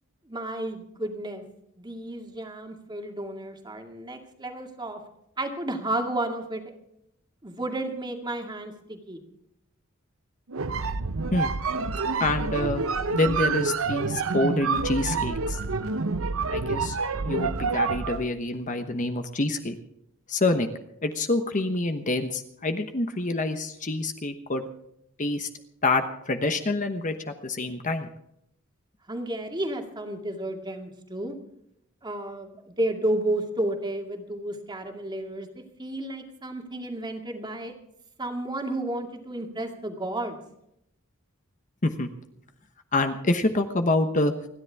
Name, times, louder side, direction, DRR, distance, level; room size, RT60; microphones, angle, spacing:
voice 1, 0.3-1.4 1.8-5.0 5.4-6.6 7.4-9.2 29.1-31.4 32.0-37.7 38.2-40.4, right 1 dB, 20° right, 3 dB, 2.2 m, -32 dB
sound 1, 10.5-18.3, right 4 dB, 70° right, 0.8 m, -28 dB
voice 2, 12.2-12.8 13.1-15.6 16.5-17.0 17.2-19.8 20.3-20.7 21.0-24.7 25.2-25.5 25.8-27.1 27.4-28.1 41.8-42.1 42.9-44.3, left 2 dB, 40° left, 7 dB, 1.1 m, -26 dB
29.0 x 10.5 x 3.6 m, 0.77 s
head